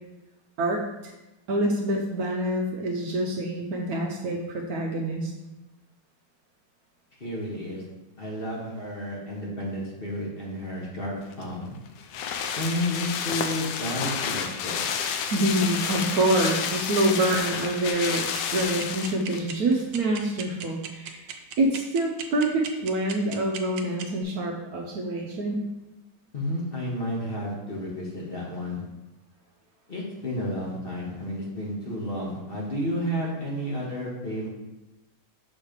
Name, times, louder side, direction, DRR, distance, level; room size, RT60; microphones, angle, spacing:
voice 1, 1.5-5.3 15.3-18.2 18.5-21.3 21.6-25.7, right 1 dB, 65° right, 0 dB, 1.0 m, -26 dB
voice 2, 7.2-7.8 8.2-11.7 12.6-14.8 26.3-28.8 29.9-34.5, equal, 35° left, -3 dB, 1.2 m, -31 dB
sound 1, 11.3-19.5 19.8-19.9, left 7 dB, 75° left, 1.2 m, -30 dB
sound 2, 18.1-24.2, right 8 dB, 90° right, 1.4 m, -36 dB
6.3 x 3.2 x 5.0 m, 1.0 s
omnidirectional pair, 2.0 m